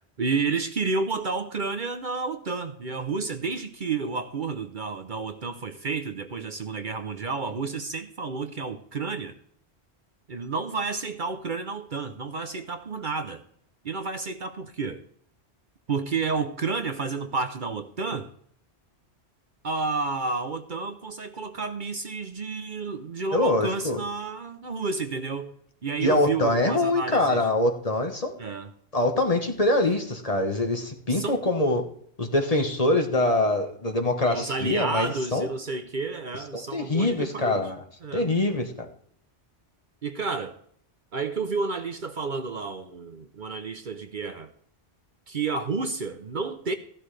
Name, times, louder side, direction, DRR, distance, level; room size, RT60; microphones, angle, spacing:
voice 1, 0.2-9.3 10.3-13.4 13.8-15.0 15.9-18.3 19.6-25.5 25.8-27.4 28.4-28.7 31.1-31.5 34.2-37.7 38.0-38.3 40.0-40.6 41.1-44.5 45.3-46.7, right 4 dB, 50° right, 0.9 m, -31 dB
voice 2, 23.3-24.0 26.0-28.3 28.9-31.8 32.2-35.5 36.5-37.8 38.1-38.9, left 2 dB, 35° left, 1.4 m, -24 dB
15.0 x 12.0 x 3.3 m
omnidirectional pair, 1.1 m